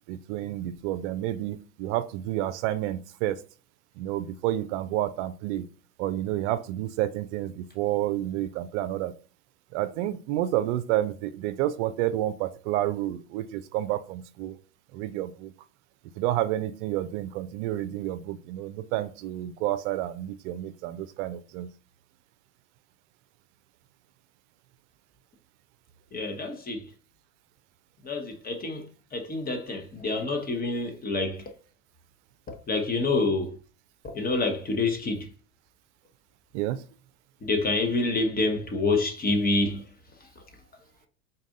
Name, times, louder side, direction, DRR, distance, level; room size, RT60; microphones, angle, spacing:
voice 1, 0.0-3.4 4.0-5.7 6.0-9.1 9.7-14.6 14.9-15.5 16.2-21.7 36.5-36.8, right 13 dB, 60° right, 0.5 m, -30 dB
voice 2, 26.1-26.8 28.0-28.8 29.1-31.4 32.5-33.5 34.0-35.3 37.4-39.8, left 3 dB, 20° left, 1.0 m, -27 dB
4.0 x 2.6 x 3.7 m
hypercardioid pair, 95°, 40 cm